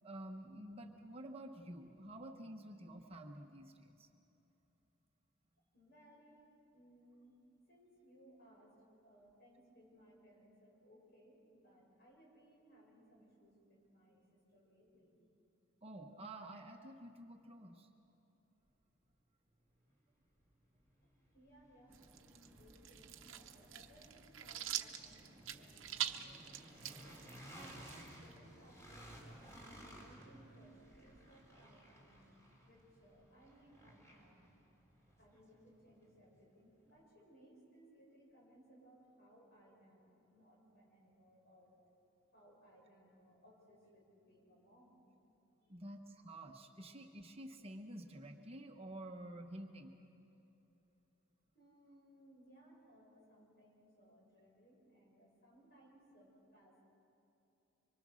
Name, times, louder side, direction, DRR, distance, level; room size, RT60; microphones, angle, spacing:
voice 1, 0.0-4.1 15.8-17.9 45.7-49.9, right 1 dB, 30° right, 3 dB, 1.1 m, -50 dB
voice 2, 5.7-15.2 21.0-27.3 27.8-32.3 32.6-34.4 35.2-41.9 42.3-45.0 45.6-45.8 51.5-56.8, right 1 dB, 55° left, -3 dB, 7.2 m, -64 dB
sound 1, 19.9-20.0 20.5-36.4, equal, 15° left, 3.6 m, -58 dB
sound 2, 21.9-32.6 33.0-33.1, equal, 10° right, 1.5 m, -67 dB
sound 3, 21.9-28.4, right 11 dB, 75° right, 0.9 m, -45 dB
25.0 x 23.5 x 6.4 m, 3.0 s
head